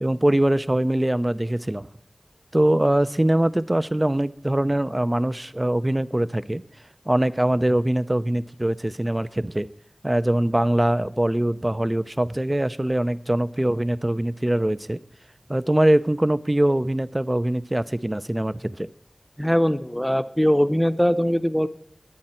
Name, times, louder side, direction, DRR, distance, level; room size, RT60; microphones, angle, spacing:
voice 1, 0.0-1.9 2.5-6.6 7.1-9.7 10.0-15.0 15.5-18.9, right 1 dB, 25° right, 15 dB, 0.6 m, -22 dB
voice 2, 19.4-21.7, equal, 5° left, 11 dB, 0.8 m, -21 dB
23.0 x 8.8 x 4.4 m, 0.73 s
wide cardioid pair, 45°, 0 cm